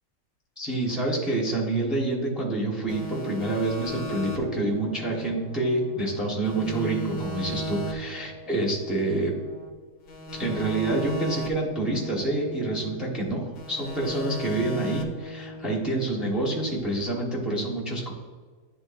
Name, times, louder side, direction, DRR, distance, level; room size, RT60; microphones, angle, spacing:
voice 1, 0.6-9.3 10.3-18.1, right 2 dB, ahead, -3 dB, 1.1 m, -27 dB
sound 1, 2.9-6.1 6.4-9.7 10.1-13.3 13.6-16.8, equal, 70° left, 1.3 m, -37 dB
10.5 x 3.9 x 2.6 m, 1.5 s
omnidirectional pair, 1.5 m